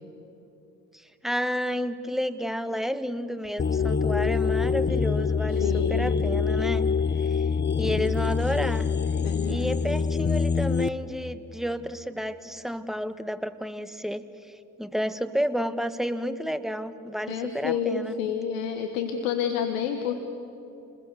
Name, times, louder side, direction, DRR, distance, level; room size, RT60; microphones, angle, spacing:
voice 1, 0.9-6.8 7.3-7.4 7.8-8.9 9.5-18.1, equal, ahead, 12 dB, 1.5 m, -31 dB
sound 1, 3.6-10.9, left 5 dB, 25° left, 0.9 m, -25 dB
voice 2, 5.5-6.1 9.2-9.7 17.3-20.2, left 8 dB, 90° left, 6 dB, 1.2 m, -29 dB
29.0 x 21.0 x 6.6 m, 2.9 s
hypercardioid pair, 45°, 39 cm